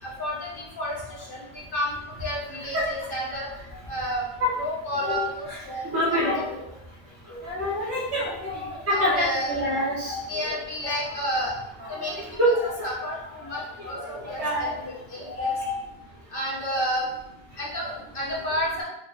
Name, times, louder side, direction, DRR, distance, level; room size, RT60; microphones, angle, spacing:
voice 1, 0.0-3.5 3.9-4.2 4.6-6.2 8.9-9.5 10.3-11.5 11.9-12.2 12.8-15.7 16.3-17.1 17.6-18.8, equal, 55° left, -5 dB, 1.4 m, -31 dB
voice 2, 5.0-5.6 5.8-6.6 7.4-10.5 10.8-11.3 11.8-12.5 13.8-14.7 15.4-15.7, left 1 dB, 85° right, -6 dB, 1.8 m, -27 dB
4.7 x 2.6 x 3.8 m, 0.87 s
omnidirectional pair, 1.1 m